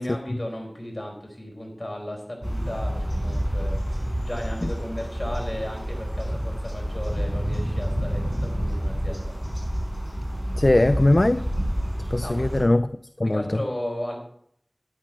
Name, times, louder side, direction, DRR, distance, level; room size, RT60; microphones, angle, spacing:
voice 1, 0.0-9.3 12.2-12.4 13.2-14.2, left 1 dB, 40° left, 4.6 m, -35 dB
sound 1, 2.4-12.6, equal, ahead, 5.6 m, -28 dB
voice 2, 10.6-11.5 12.1-12.9 13.2-13.6, left 1 dB, 55° left, 0.4 m, -20 dB
12.5 x 9.9 x 4.5 m
wide cardioid pair, 40°, 0 cm